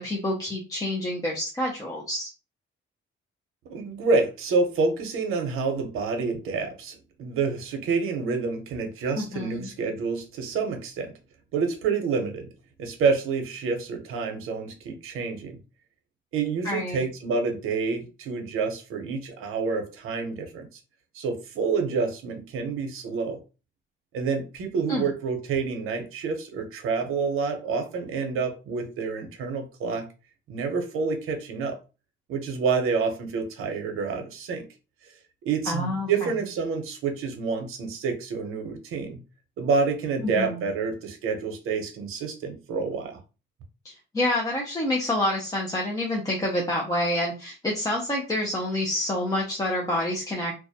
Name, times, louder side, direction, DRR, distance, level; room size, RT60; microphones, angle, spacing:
voice 1, 0.0-2.3 9.2-9.7 16.6-17.0 24.9-25.1 35.7-36.3 40.2-40.6 43.8-50.5, left 1 dB, 15° left, -2 dB, 0.5 m, -28 dB
voice 2, 3.6-11.1 11.5-12.5 12.8-15.6 16.3-20.7 21.1-23.4 24.1-30.1 30.5-31.8 32.3-34.6 35.4-39.2 39.6-43.2, right 4 dB, 85° right, 5 dB, 0.7 m, -28 dB
2.3 x 2.1 x 2.6 m, 0.31 s
cardioid pair, 130°, 21 cm